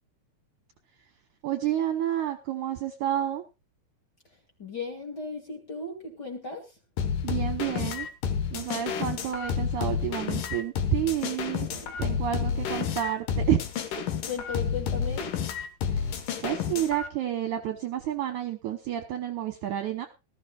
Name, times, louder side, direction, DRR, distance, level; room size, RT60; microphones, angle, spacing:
voice 1, 1.4-3.4 7.2-8.1 8.5-11.7 12.0-13.7 15.9-20.1, right 11 dB, 70° right, 7 dB, 2.0 m, -30 dB
voice 2, 4.3-6.8 11.7-12.0 12.3-12.7 14.3-15.3, left 4 dB, 30° left, 1 dB, 2.6 m, -37 dB
sound 1, 7.0-17.1, left 7 dB, 65° left, 2.8 m, -30 dB
19.0 x 13.5 x 2.4 m, 0.27 s
omnidirectional pair, 4.3 m